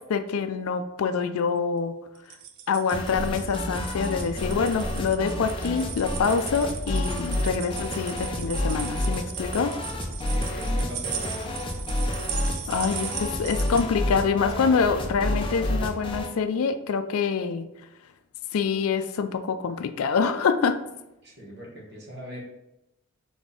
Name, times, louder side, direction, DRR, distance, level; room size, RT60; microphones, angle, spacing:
voice 1, 0.1-1.9 2.7-9.7 12.4-17.7 18.5-20.8, left 5 dB, 80° left, 9 dB, 0.4 m, -26 dB
sound 1, 2.2-13.8, right 9 dB, 80° right, 0.5 m, -38 dB
sound 2, 2.9-16.3, left 1 dB, 25° left, 0.5 m, -30 dB
voice 2, 10.2-11.4 21.2-22.4, equal, 50° right, -3 dB, 1.3 m, -40 dB
4.2 x 3.4 x 3.5 m, 0.91 s
head